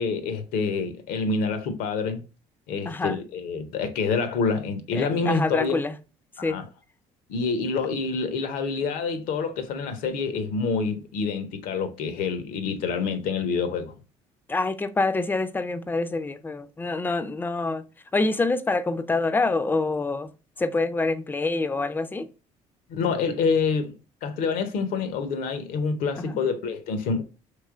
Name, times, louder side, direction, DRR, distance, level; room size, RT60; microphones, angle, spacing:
voice 1, 0.0-2.2 2.7-5.8 6.4-6.6 7.3-13.9 22.9-23.9 24.2-27.2, left 4 dB, 70° left, 0.6 m, -27 dB
voice 2, 2.9-3.2 5.0-6.0 6.4-6.6 14.5-17.8 18.1-20.3 20.6-22.3 26.2-26.4, left 3 dB, 15° left, 0.4 m, -26 dB
3.1 x 3.0 x 2.3 m
hypercardioid pair, 65°, 15 cm